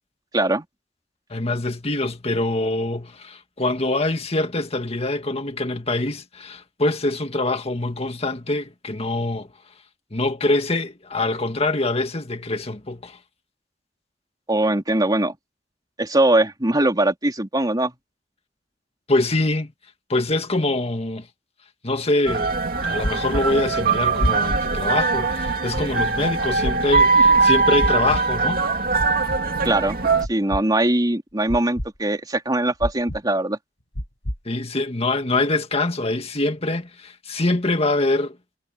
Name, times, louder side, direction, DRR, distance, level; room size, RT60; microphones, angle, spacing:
voice 1, 0.3-0.6 14.5-15.3 16.0-17.9 29.6-33.6, right 1 dB, 20° right, 3.4 m, -21 dB
voice 2, 1.3-9.5 10.1-13.2 19.1-19.7 20.1-21.3 21.8-22.5 22.8-28.7 34.5-38.4, left 2 dB, 35° left, 1.9 m, -24 dB
sound 1, 22.3-30.3, right 4 dB, 55° right, 2.3 m, -21 dB
sound 2, 23.0-23.4 24.2-24.6 25.4-25.8 26.6-27.0 27.8-28.2 29.0-29.4 30.2-30.6 31.5-31.9 32.8-33.2 34.0-34.4, equal, 85° left, 7.7 m, -26 dB
head